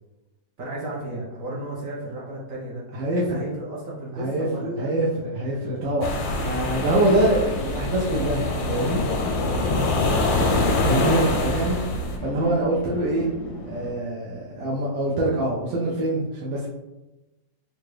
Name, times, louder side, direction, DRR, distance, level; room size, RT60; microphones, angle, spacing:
voice 1, 0.6-2.9 3.3-4.9, right 1 dB, 60° right, -4 dB, 0.9 m, -33 dB
voice 2, 2.9-3.4 4.2-9.0 10.8-11.8 12.2-13.3 13.7-16.7, right 1 dB, 85° right, -5 dB, 1.3 m, -24 dB
sound 1, 6.0-12.2, left 2 dB, 85° left, 1.4 m, -24 dB
sound 2, 7.4-13.9, equal, 65° left, 0.9 m, -38 dB
3.8 x 2.2 x 3.1 m, 1.0 s
omnidirectional pair, 2.0 m